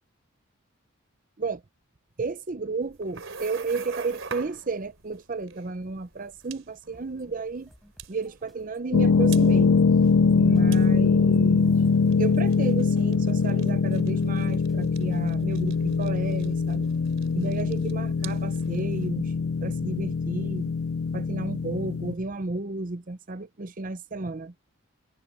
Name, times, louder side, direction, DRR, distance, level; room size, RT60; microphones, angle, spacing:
voice 1, 2.2-7.7 8.1-9.7 10.3-11.8 12.2-16.9 17.3-19.3 19.6-20.7 21.1-24.5, right 3 dB, 40° right, 0.7 m, -32 dB
sound 1, 2.8-19.1, right 6 dB, 65° right, 3.8 m, -46 dB
sound 2, 6.9-15.2, equal, ahead, 4.7 m, -58 dB
sound 3, 8.9-22.1, left 5 dB, 75° left, 0.4 m, -23 dB
head